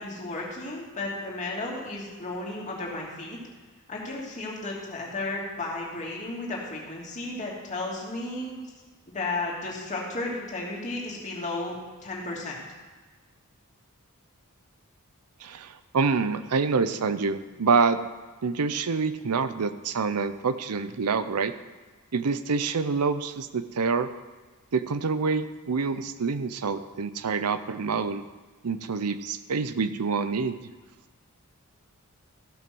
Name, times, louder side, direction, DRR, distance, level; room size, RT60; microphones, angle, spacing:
voice 1, 0.0-3.4 3.9-8.5 9.1-11.7 12.0-12.6, left 2 dB, 35° left, -4 dB, 2.8 m, -33 dB
voice 2, 15.4-18.0 18.4-21.5 22.1-24.1 24.7-28.2 28.6-30.6, right 4 dB, 90° right, 12 dB, 0.6 m, -26 dB
15.0 x 6.0 x 6.2 m, 1.3 s
head